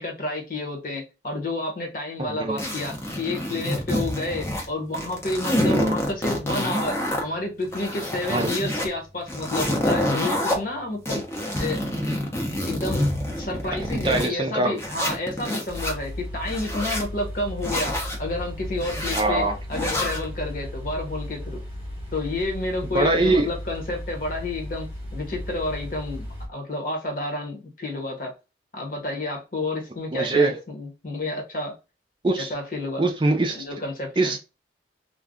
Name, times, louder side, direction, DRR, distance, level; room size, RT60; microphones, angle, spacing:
voice 1, 0.0-11.2 11.6-11.8 12.6-13.1 13.3-21.6 22.1-24.9 25.1-28.3 28.7-31.7 32.4-33.0 33.5-34.4, left 2 dB, 50° left, 1.0 m, -30 dB
voice 2, 2.2-2.6 5.7-6.0 8.3-8.5 13.9-14.8 19.1-19.5 22.9-23.5 30.1-30.5 32.2-32.5 33.0-33.7 34.2-34.4, right 2 dB, 25° right, 0.4 m, -22 dB
sound 1, 2.6-4.7 4.9-7.2 7.6-8.9 9.3-10.6 11.1-14.3 14.8-15.9 16.4-17.1 17.6-18.2 18.8-19.2 19.7-20.2, left 1 dB, 15° left, 0.7 m, -27 dB
sound 2, 15.7-26.5, left 1 dB, 10° right, 1.1 m, -35 dB
2.5 x 2.3 x 3.5 m
head